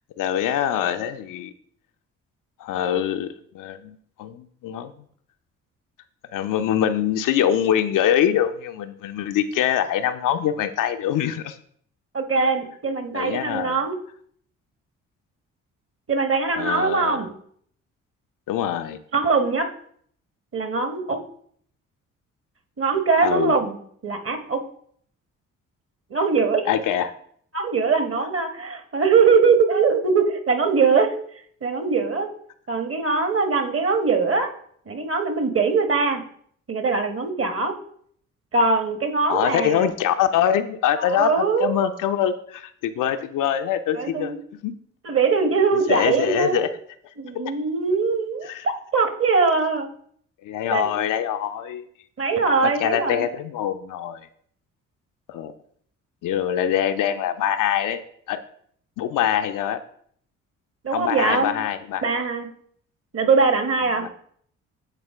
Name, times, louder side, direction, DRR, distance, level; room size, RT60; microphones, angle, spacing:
voice 1, 0.2-1.5 2.6-4.9 6.3-11.6 13.1-13.8 16.6-17.2 18.5-19.0 23.2-23.6 26.7-27.1 39.3-44.3 44.6-44.7 45.9-46.7 47.3-47.4 48.4-48.7 50.4-51.8 52.8-54.2 55.3-55.5 56.2-58.0 58.3-58.4 59.0-59.8 60.9-62.2 64.0-64.1, left 10 dB, 55° left, 9 dB, 0.6 m, -24 dB
voice 2, 12.1-14.0 16.1-17.3 19.1-19.7 20.5-21.2 22.8-23.8 24.0-24.6 26.1-26.7 27.5-31.1 31.6-32.3 32.7-34.5 34.9-36.2 36.7-37.7 38.5-39.9 41.0-41.9 44.0-44.4 45.0-46.6 47.2-49.9 50.7-50.9 52.2-53.3 60.8-61.5 62.0-62.5 63.1-64.1, right 4 dB, 35° right, 7 dB, 1.3 m, -22 dB
9.0 x 4.1 x 3.5 m, 0.62 s
figure-of-eight pair, 45°, 39 cm